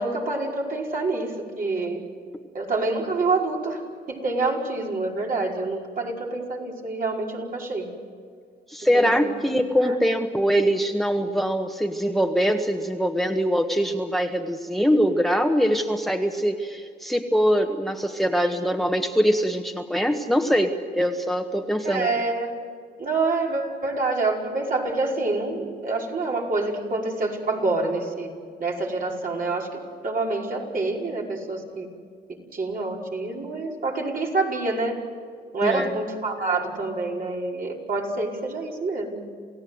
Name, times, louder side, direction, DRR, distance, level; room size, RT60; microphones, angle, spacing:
voice 1, 0.0-2.0 2.5-3.8 4.1-7.9 8.9-9.3 9.8-10.0 21.8-22.5 23.0-28.3 28.6-31.9 32.5-35.0 35.5-39.3, right 3 dB, 55° right, -2 dB, 5.3 m, -27 dB
voice 2, 8.7-22.1 35.6-35.9, equal, ahead, 5 dB, 1.6 m, -23 dB
28.0 x 16.5 x 8.0 m, 2.1 s
cardioid pair, 70°, 17 cm